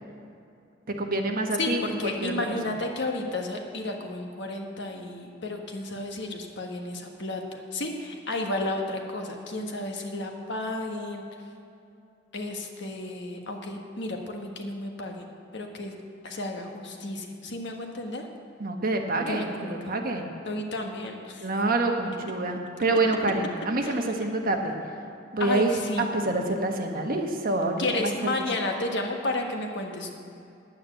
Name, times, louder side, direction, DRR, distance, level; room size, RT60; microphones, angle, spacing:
voice 1, 1.0-2.5 18.6-20.3 21.4-24.7 25.3-28.1, right 2 dB, 50° right, 3 dB, 1.3 m, -27 dB
voice 2, 1.6-11.2 12.3-15.2 15.5-16.0 16.2-18.2 19.3-20.0 20.4-21.5 23.8-24.0 25.4-26.1 27.8-30.2, left 2 dB, 65° left, 2 dB, 1.4 m, -32 dB
10.0 x 9.1 x 7.7 m, 2.6 s
head